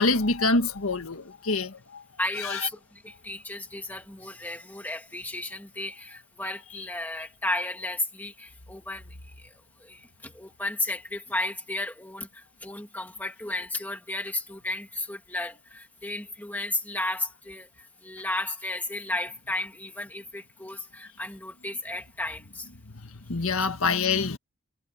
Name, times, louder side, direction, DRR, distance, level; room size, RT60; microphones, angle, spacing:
voice 1, 0.0-2.0 2.4-2.6 23.0-24.4, left 3 dB, 75° left, 1.7 m, -26 dB
voice 2, 2.2-2.8 3.0-9.1 9.8-17.7 18.0-22.7, left 2 dB, 10° left, 2.0 m, -33 dB
head